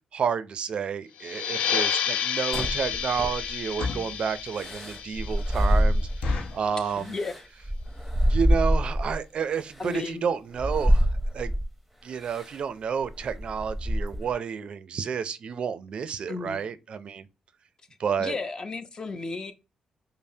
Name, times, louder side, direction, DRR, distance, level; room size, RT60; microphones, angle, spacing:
voice 1, 0.1-7.1 8.3-11.5 12.0-17.3 18.0-18.4, right 7 dB, 55° right, 0.4 m, -30 dB
sound 1, 1.2-6.4, left 8 dB, 90° left, 0.4 m, -31 dB
sound 2, 2.0-2.1 2.6-2.8 3.5-4.2 4.8-4.9 5.2-5.3 5.6-5.7 6.2-6.7 7.3-7.6 7.9-8.0 8.2-8.5 9.0-9.1 9.3-9.5 9.8-9.9 10.1-10.2, left 4 dB, 70° left, 0.8 m, -33 dB
sound 3, 2.5-3.7 4.6-6.5 6.9-9.2 9.8-10.0 10.5-11.7 12.2-12.6 13.0-14.3, equal, 5° right, 0.7 m, -25 dB
voice 2, 7.0-7.3 9.8-10.3 16.3-16.6 18.2-19.5, left 3 dB, 35° left, 0.6 m, -33 dB
5.3 x 2.0 x 2.7 m
cardioid pair, 90°, 2 cm